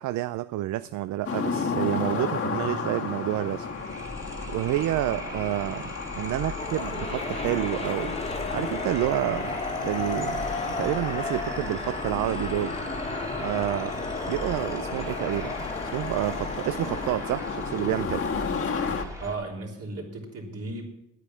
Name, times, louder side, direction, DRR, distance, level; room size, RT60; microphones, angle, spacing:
voice 1, 0.0-3.7 4.5-8.2 8.5-10.4 10.8-12.8 13.4-15.7 15.9-18.2, right 15 dB, 75° right, 0.4 m, -29 dB
sound 1, 1.2-19.0, left 5 dB, 50° left, 1.5 m, -34 dB
sound 2, 2.8-19.4, equal, 10° right, 1.9 m, -40 dB
sound 3, 6.6-17.2, left 2 dB, 20° left, 1.5 m, -34 dB
voice 2, 19.2-20.8, right 3 dB, 55° right, 3.4 m, -35 dB
9.4 x 9.2 x 7.1 m
cardioid pair, 90°, 30 cm